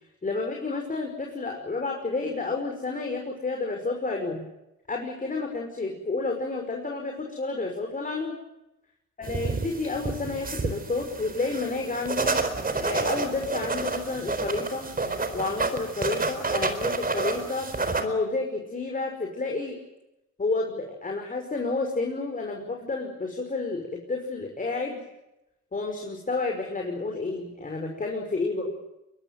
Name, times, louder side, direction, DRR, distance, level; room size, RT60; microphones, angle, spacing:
voice 1, 0.2-4.5 4.9-8.4 9.2-12.4 12.8-14.9 15.3-17.7 18.0-19.8 20.4-25.0 25.7-28.7, left 3 dB, 25° left, 2 dB, 5.7 m, -30 dB
sound 1, 9.2-18.0, right 3 dB, 30° right, 4.2 m, -29 dB
23.0 x 22.0 x 9.2 m, 0.92 s
cardioid pair, 90°, 30 cm